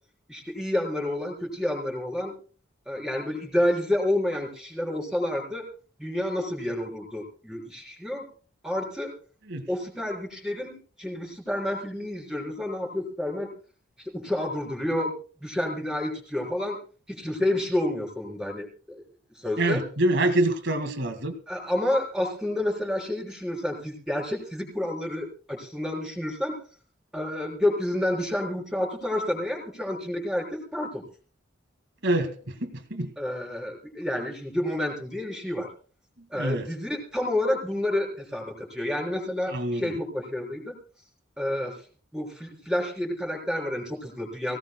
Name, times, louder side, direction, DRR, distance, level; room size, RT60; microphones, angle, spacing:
voice 1, 0.3-2.3 2.9-5.7 6.0-8.3 8.6-9.1 9.7-13.5 14.0-16.8 17.1-19.0 19.4-19.8 21.5-26.6 27.1-31.0 33.2-35.7 36.3-40.8 41.4-41.8 42.1-44.6, left 1 dB, 5° right, 1 dB, 4.1 m, -29 dB
voice 2, 19.6-21.3 32.0-33.1 36.3-36.7 39.5-39.9, right 1 dB, 60° right, 7 dB, 2.1 m, -26 dB
23.5 x 17.0 x 2.3 m, 0.38 s
head